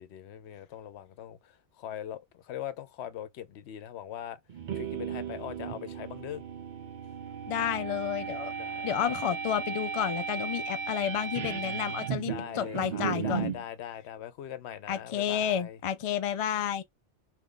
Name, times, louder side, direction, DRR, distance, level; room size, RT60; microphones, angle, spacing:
voice 1, 0.0-4.4 4.7-6.4 8.6-8.9 12.2-15.8, left 10 dB, 85° left, 0.9 m, -41 dB
sound 1, 4.5-13.6, right 6 dB, 55° right, 0.6 m, -35 dB
voice 2, 7.5-8.5 8.8-13.5 14.9-16.8, left 9 dB, 60° left, 0.3 m, -31 dB
2.7 x 2.4 x 3.6 m
omnidirectional pair, 1.1 m